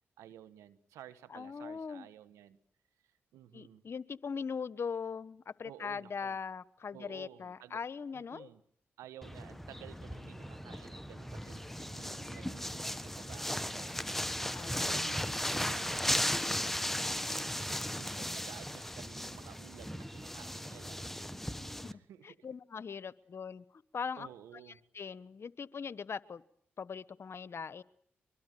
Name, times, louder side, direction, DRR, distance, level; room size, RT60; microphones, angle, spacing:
voice 1, 0.2-2.6 3.0-3.8 5.6-6.4 6.9-7.8 8.1-8.6 9.0-14.5 14.9-17.7 18.0-21.1 21.9-22.5 24.2-24.8, right 11 dB, 90° right, 13 dB, 1.5 m, -54 dB
voice 2, 1.3-2.1 3.5-8.5 14.5-15.1 21.8-21.9 22.2-24.3 24.9-26.4 26.8-27.8, left 6 dB, 55° left, 17 dB, 1.2 m, -40 dB
sound 1, 9.2-21.9, equal, 5° left, 1.4 m, -36 dB
23.5 x 23.0 x 9.2 m, 0.64 s
supercardioid pair, 50°, 5 cm